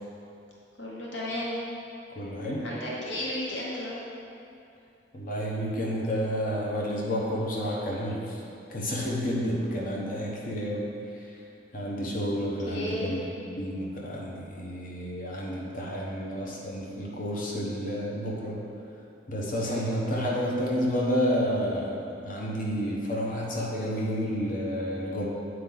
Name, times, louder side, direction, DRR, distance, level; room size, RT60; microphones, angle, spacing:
voice 1, 0.8-1.6 2.6-4.0 12.3-13.2 19.6-19.9, left 1 dB, 90° left, -5 dB, 1.0 m, -34 dB
voice 2, 2.1-2.7 5.1-8.2 8.7-10.9 11.7-13.2 13.6-18.6 19.3-25.2, equal, 50° left, -3 dB, 1.0 m, -30 dB
7.9 x 4.6 x 3.9 m, 2.6 s
head